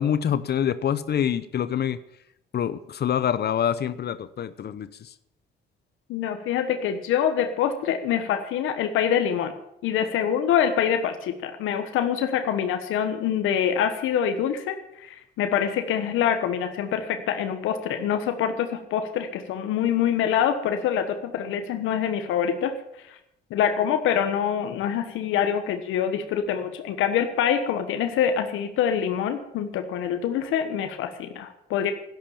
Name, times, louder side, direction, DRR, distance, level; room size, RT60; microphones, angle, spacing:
voice 1, 0.0-2.0 2.5-5.1, left 9 dB, 55° left, 14 dB, 0.8 m, -26 dB
voice 2, 6.1-9.5 9.8-22.7 23.5-31.9, left 8 dB, 90° left, 7 dB, 1.3 m, -25 dB
12.0 x 11.5 x 7.2 m, 0.79 s
cardioid pair, 90°, 20 cm